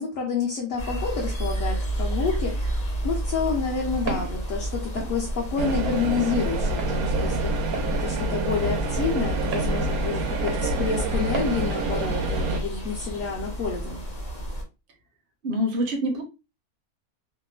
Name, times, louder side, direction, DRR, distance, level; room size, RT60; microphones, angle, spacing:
voice 1, 0.0-7.5 7.9-14.0, left 5 dB, 70° left, -5 dB, 1.1 m, -29 dB
sound 1, 0.8-14.6, right 1 dB, 40° left, 0.7 m, -31 dB
Walk footsteps, 4.1-4.4 5.0-5.1 5.9-6.0 6.8-7.0 7.7-7.9 8.6-8.8 9.5-9.7 10.5-10.7 11.3-11.5, right 4 dB, 65° right, 1.1 m, -33 dB
sound 2, 5.6-12.6, right 2 dB, 85° right, 1.1 m, -27 dB
voice 2, 15.4-16.2, equal, 50° right, 3 dB, 0.7 m, -25 dB
3.0 x 2.0 x 2.3 m, 0.28 s
omnidirectional pair, 1.5 m